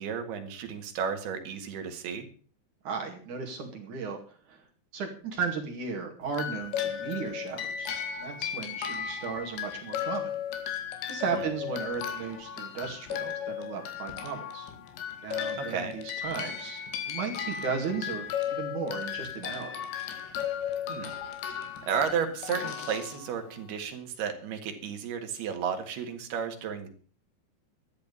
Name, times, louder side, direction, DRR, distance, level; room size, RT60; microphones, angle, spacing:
voice 1, 0.0-2.3 11.3-11.5 15.6-16.0 20.9-21.1 21.8-26.9, right 7 dB, 65° right, 6 dB, 3.6 m, -33 dB
voice 2, 2.8-4.6 4.9-10.3 11.1-14.7 15.2-19.8, right 5 dB, 50° right, 2 dB, 3.2 m, -35 dB
sound 1, 6.3-23.7, left 9 dB, 70° left, 4.1 m, -35 dB
13.0 x 10.5 x 6.9 m, 0.43 s
omnidirectional pair, 5.3 m